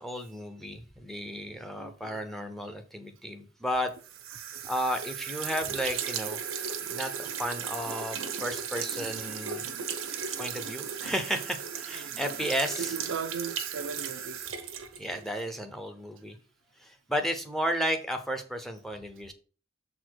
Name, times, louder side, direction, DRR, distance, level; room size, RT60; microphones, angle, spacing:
voice 1, 0.0-3.9 4.6-6.4 6.8-9.7 10.4-13.0 15.0-16.4 16.8-19.3, equal, ahead, 0.8 m, -33 dB
voice 2, 1.7-2.2 9.9-10.0 11.9-12.2 12.9-14.4, right 5 dB, 70° right, 0.6 m, -37 dB
sound 1, 4.0-15.5, right 8 dB, 90° right, 1.0 m, -36 dB
7.0 x 4.2 x 4.7 m
head